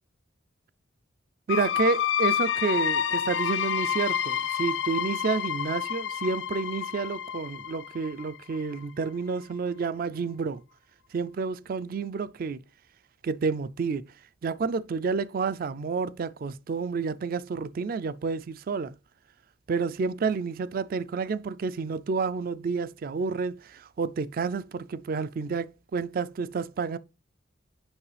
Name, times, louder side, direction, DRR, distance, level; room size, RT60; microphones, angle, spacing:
sound 1, 1.5-9.1, left 9 dB, 65° left, 0.4 m, -29 dB
voice 1, 1.5-10.6 11.1-12.6 13.2-14.1 14.4-18.9 19.7-27.0, right 4 dB, 45° right, 0.3 m, -30 dB
7.2 x 5.3 x 3.3 m
head